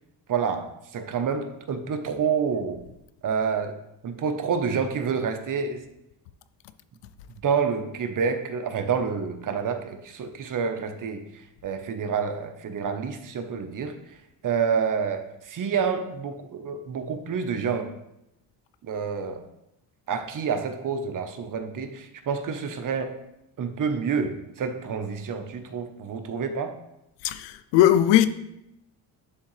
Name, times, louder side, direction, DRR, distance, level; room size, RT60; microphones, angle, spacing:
voice 1, 0.3-2.8 3.2-3.8 4.0-5.8 7.4-14.0 14.4-17.9 18.8-19.4 20.1-23.2 23.6-26.8, right 6 dB, 50° right, 0.9 m, -28 dB
voice 2, 27.2-28.3, left 12 dB, 85° left, 0.6 m, -19 dB
11.0 x 3.7 x 3.2 m
cardioid pair, 90°, 42 cm